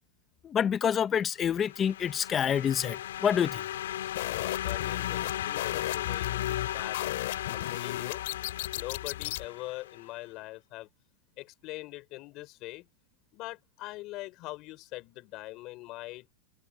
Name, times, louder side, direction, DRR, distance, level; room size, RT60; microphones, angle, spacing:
voice 1, 0.4-3.6, left 8 dB, 20° left, 1.1 m, -27 dB
sound 1, 1.4-10.0, left 12 dB, 85° left, 5.3 m, -36 dB
sound 2, 4.1-9.4, left 18 dB, 60° left, 6.8 m, -36 dB
voice 2, 4.3-7.1 7.5-8.2 8.8-10.9 11.4-12.9 13.3-16.3, left 19 dB, 40° left, 5.2 m, -42 dB
supercardioid pair, 150°, 0 cm